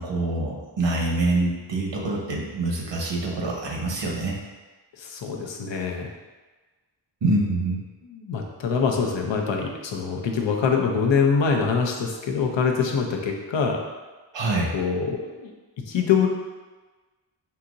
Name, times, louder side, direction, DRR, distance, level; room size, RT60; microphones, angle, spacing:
voice 1, 0.0-4.4 7.2-7.9 14.3-14.7, right 2 dB, 80° right, -2 dB, 1.0 m, -25 dB
voice 2, 5.0-6.1 8.1-13.8 14.7-15.5 15.9-16.3, left 5 dB, 85° left, 2 dB, 0.7 m, -24 dB
5.6 x 2.8 x 2.6 m, 1.3 s
wide cardioid pair, 90°, 43 cm